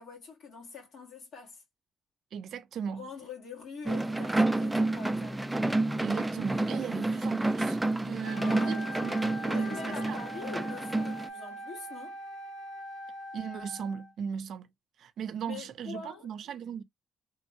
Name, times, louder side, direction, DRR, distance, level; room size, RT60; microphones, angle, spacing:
voice 1, 0.0-1.6 2.9-5.4 8.4-8.9 9.5-12.2 15.5-16.3, left 5 dB, 65° left, 1.6 m, -44 dB
voice 2, 2.3-3.0 6.0-10.2 13.3-14.7 15.0-16.8, right 7 dB, 70° right, 0.4 m, -37 dB
sound 1, 3.9-11.3, right 2 dB, 10° right, 0.4 m, -29 dB
Wind instrument woodwind instrument, 8.2-14.1, equal, 85° left, 0.6 m, -42 dB
3.2 x 2.2 x 2.7 m
cardioid pair, 90°, 0 cm